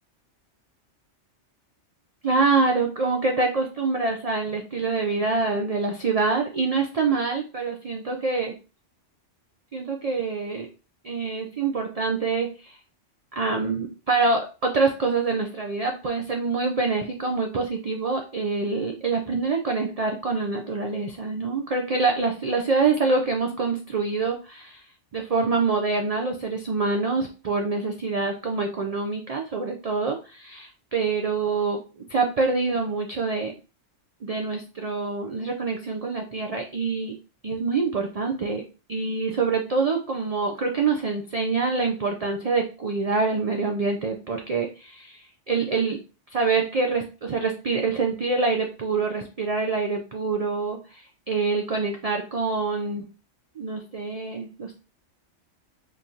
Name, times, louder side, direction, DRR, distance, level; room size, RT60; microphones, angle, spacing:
voice 1, 2.2-8.5 9.7-10.7 11.0-12.8 13.3-24.8 25.1-31.8 32.1-33.5 34.2-37.2 37.4-38.6 38.9-46.0 46.3-53.1 53.6-54.7, right 4 dB, 55° right, 2 dB, 0.4 m, -25 dB
4.1 x 3.1 x 2.7 m, 0.34 s
omnidirectional pair, 1.3 m